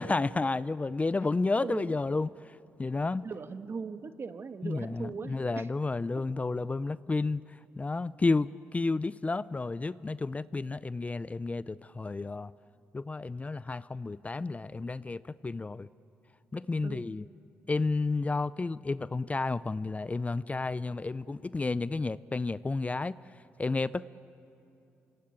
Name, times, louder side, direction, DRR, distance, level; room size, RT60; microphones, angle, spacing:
voice 1, 0.0-2.3 2.8-3.3 4.6-7.4 7.8-12.5 12.9-15.9 16.5-17.2 17.7-23.2 23.6-24.1, left 3 dB, 25° left, 18 dB, 0.5 m, -31 dB
voice 2, 1.6-2.0 3.2-5.7 16.8-17.1, right 5 dB, 45° right, 9 dB, 1.4 m, -39 dB
26.5 x 20.5 x 8.9 m, 2.8 s
supercardioid pair, 55°, 6 cm